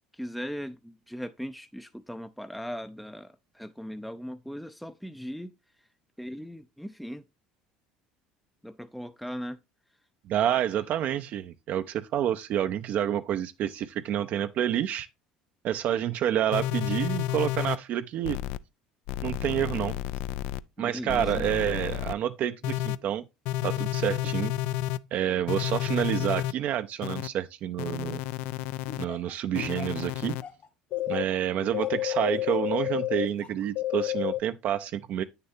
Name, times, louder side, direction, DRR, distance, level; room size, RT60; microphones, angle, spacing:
voice 1, 0.0-5.9 6.2-7.2 8.6-9.6 20.8-21.5, equal, ahead, 0.4 m, -39 dB
voice 2, 10.3-15.1 15.6-18.4 19.2-20.0 20.8-23.2 23.6-24.5 25.1-28.2 29.0-30.4 31.1-35.2, right 10 dB, 55° right, 0.5 m, -28 dB
sound 1, 16.5-17.8 18.2-18.6 19.1-20.6 21.1-22.1 22.6-23.0 23.5-25.0 25.5-26.5 27.0-27.3 27.8-29.1 29.5-30.4 30.9-31.2 31.7-33.3 33.8-34.4, left 14 dB, 70° left, 0.4 m, -30 dB
Laughter, 28.9-32.7 33.2-33.7, left 6 dB, 40° left, 1.3 m, -43 dB
8.7 x 6.7 x 2.7 m
hypercardioid pair, 80°, 3 cm